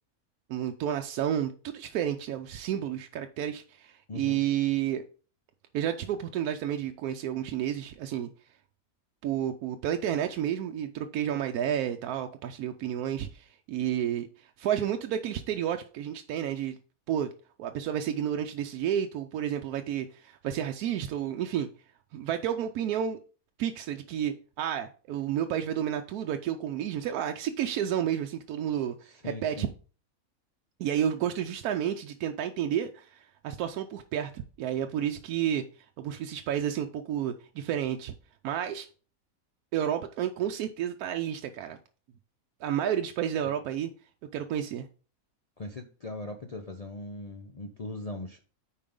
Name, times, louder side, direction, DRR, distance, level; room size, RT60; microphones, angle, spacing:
voice 1, 0.5-5.1 5.7-8.3 9.2-16.8 17.1-17.3 17.6-21.7 22.1-23.2 23.6-29.0 29.2-29.7 30.8-35.6 36.0-38.1 38.4-38.9 39.7-41.8 42.6-43.9 44.3-44.9, right 10 dB, 90° right, 5 dB, 1.1 m, -31 dB
voice 2, 4.1-4.4 29.0-29.7 45.6-48.4, left 2 dB, 50° left, 3 dB, 0.4 m, -39 dB
8.7 x 4.6 x 3.6 m, 0.38 s
omnidirectional pair, 1.5 m